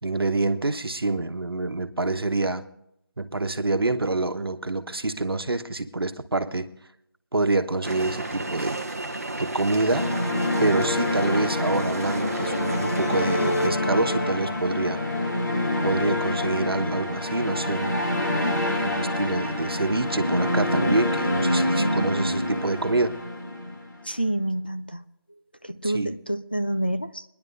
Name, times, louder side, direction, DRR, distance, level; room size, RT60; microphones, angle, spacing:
voice 1, 0.0-2.6 3.2-6.7 7.3-8.8 9.4-10.1 10.6-15.0 15.8-17.9 18.5-23.1 25.8-26.1, right 2 dB, 75° right, 9 dB, 1.2 m, -26 dB
sound 1, 7.8-13.7, right 2 dB, 40° right, 0.9 m, -32 dB
sound 2, 9.9-24.0, left 1 dB, 50° left, 2.8 m, -26 dB
voice 2, 21.8-22.5 24.0-25.0 25.6-27.2, right 1 dB, 25° left, 8 dB, 0.4 m, -28 dB
26.0 x 10.5 x 2.6 m, 0.77 s
figure-of-eight pair, 180°, 12 cm